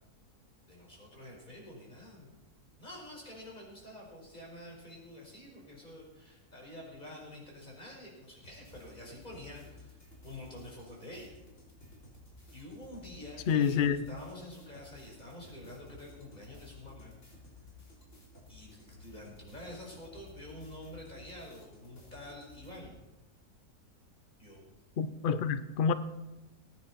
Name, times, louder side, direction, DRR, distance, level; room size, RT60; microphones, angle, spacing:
voice 1, 0.7-2.3 2.8-11.3 12.5-17.1 18.5-22.9 24.4-24.6, left 1 dB, 30° left, 5.0 m, -48 dB
sound 1, 8.4-22.9, left 3 dB, 50° left, 3.8 m, -55 dB
voice 2, 13.5-14.0 25.0-25.9, left 7 dB, 80° left, 0.4 m, -27 dB
19.5 x 9.7 x 4.3 m
omnidirectional pair, 1.7 m